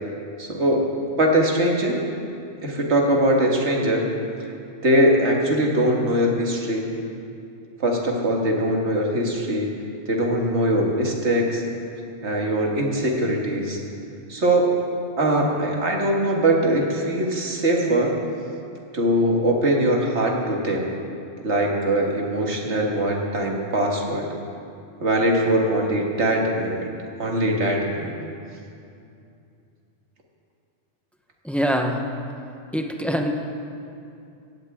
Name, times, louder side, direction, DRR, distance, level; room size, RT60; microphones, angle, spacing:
voice 1, 0.4-0.8 1.2-2.0 2.6-4.1 4.8-6.9 7.8-9.7 10.1-11.6 12.2-13.8 14.3-14.7 15.2-18.1 18.9-20.9 21.4-24.3 25.0-26.9 27.2-28.1, right 1 dB, 70° right, -1 dB, 2.1 m, -21 dB
voice 2, 31.4-32.0 32.7-33.3, equal, ahead, 2 dB, 0.9 m, -23 dB
17.5 x 16.0 x 3.7 m, 2.5 s
omnidirectional pair, 1.2 m